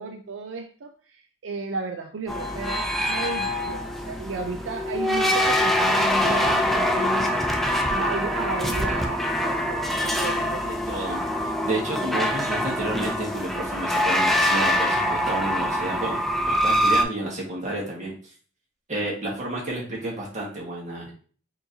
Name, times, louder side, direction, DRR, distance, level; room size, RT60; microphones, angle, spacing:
voice 1, 0.0-7.4 7.9-10.8, right 4 dB, 75° right, 3 dB, 0.5 m, -34 dB
sound 1, 2.3-17.0, equal, ahead, 0.4 m, -24 dB
voice 2, 10.7-11.2 11.6-16.2 16.5-18.1 18.9-21.1, right 1 dB, 40° right, -4 dB, 1.6 m, -30 dB
4.6 x 3.0 x 2.7 m, 0.41 s
head